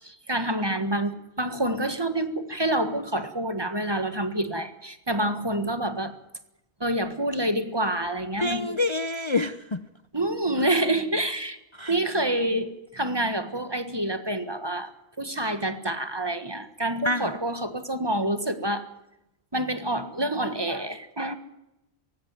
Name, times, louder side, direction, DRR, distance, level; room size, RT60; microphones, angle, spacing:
voice 1, 0.0-6.2 6.8-8.8 10.1-11.6 11.9-14.9 15.2-18.9 19.5-21.3, right 1 dB, 25° right, 10 dB, 1.6 m, -27 dB
voice 2, 8.4-9.8 11.8-11.9 17.0-17.3, left 2 dB, 30° left, 11 dB, 0.7 m, -27 dB
17.5 x 16.5 x 9.4 m, 0.87 s
omnidirectional pair, 1.1 m